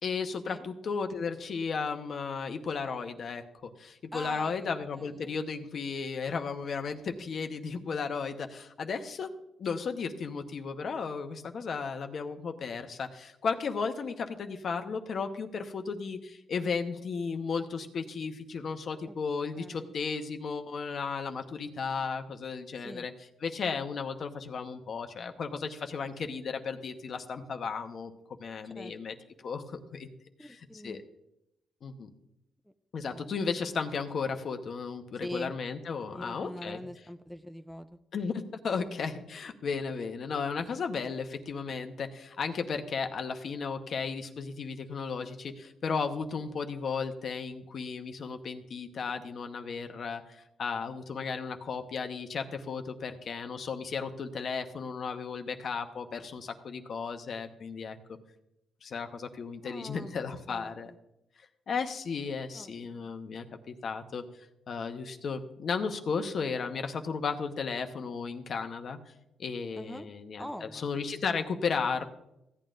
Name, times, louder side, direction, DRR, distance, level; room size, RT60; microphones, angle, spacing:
voice 1, 0.0-9.3 9.6-23.1 23.4-28.1 28.4-29.1 29.4-30.1 30.4-31.0 31.8-32.1 32.9-36.8 38.1-58.0 58.8-60.9 61.7-64.2 64.7-69.0 69.4-72.1, left 5 dB, 55° left, 6 dB, 1.0 m, -34 dB
voice 2, 4.1-4.7 5.0-5.4 19.1-19.2 19.5-19.9 22.8-23.1 28.8-29.0 30.4-31.0 33.1-33.5 35.2-35.5 36.1-38.0 59.6-60.1 60.5-61.0 62.5-63.1 69.7-70.1 70.4-71.2, equal, ahead, 9 dB, 0.5 m, -43 dB
16.0 x 8.9 x 2.6 m, 0.84 s
cardioid pair, 90°, 0 cm